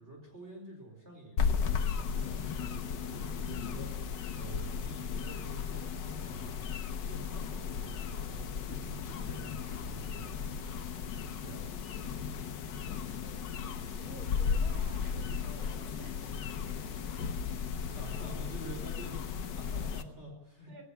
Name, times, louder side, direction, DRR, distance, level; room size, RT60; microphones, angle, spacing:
voice 1, 0.0-6.6 7.0-10.5 11.4-11.7 17.9-20.8, right 1 dB, 30° right, 2 dB, 4.5 m, -47 dB
sound 1, 1.4-20.0, left 6 dB, 60° left, 1.7 m, -35 dB
voice 2, 13.2-18.4 20.7-20.8, right 2 dB, 75° right, 5 dB, 5.0 m, -54 dB
17.5 x 17.5 x 8.9 m, 0.93 s
omnidirectional pair, 2.3 m